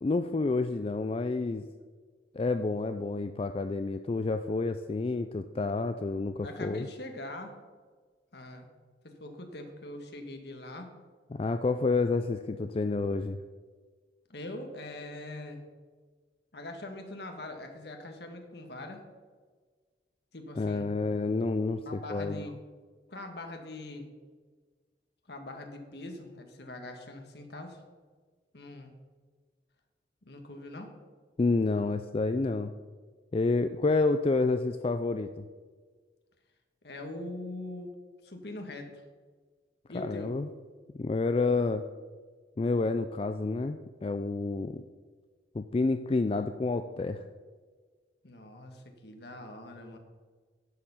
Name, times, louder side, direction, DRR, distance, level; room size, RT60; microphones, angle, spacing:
voice 1, 0.0-1.7 2.3-6.9 11.3-13.4 20.6-22.5 31.4-32.7 33.3-35.4 39.9-40.5 41.0-41.8 42.6-44.8 45.5-47.2, left 3 dB, 30° left, 8 dB, 0.3 m, -29 dB
voice 2, 6.4-7.5 8.3-8.7 9.0-10.9 14.3-15.6 16.5-19.0 20.3-20.9 21.8-22.6 23.1-24.1 25.3-27.8 28.5-28.9 30.2-30.9 36.8-37.9 38.2-38.9 39.9-40.3 48.2-50.0, left 2 dB, 60° left, 4 dB, 1.5 m, -42 dB
11.0 x 6.8 x 5.6 m, 1.5 s
head